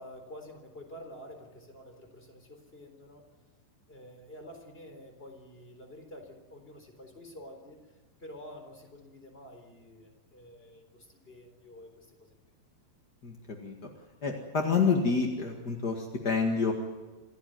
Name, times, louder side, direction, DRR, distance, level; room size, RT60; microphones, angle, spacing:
voice 1, 0.0-3.3 3.9-7.8 8.2-12.4, left 1 dB, 15° left, 5 dB, 3.6 m, -49 dB
voice 2, 13.2-13.7 14.2-16.7, left 5 dB, 45° left, 2 dB, 1.3 m, -28 dB
27.0 x 14.5 x 9.5 m, 1.2 s
omnidirectional pair, 4.8 m